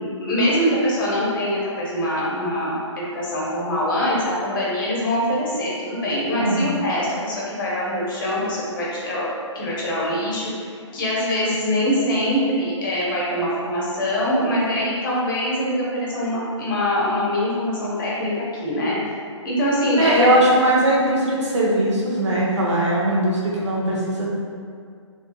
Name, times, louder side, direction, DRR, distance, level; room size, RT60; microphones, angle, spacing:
voice 1, 0.0-9.3 9.5-19.0 19.4-20.4, equal, 40° left, -6 dB, 0.9 m, -23 dB
voice 2, 6.4-6.7 20.0-24.3, right 1 dB, 70° right, -5 dB, 0.9 m, -20 dB
3.2 x 2.7 x 2.2 m, 2.1 s
hypercardioid pair, 145°, 16 cm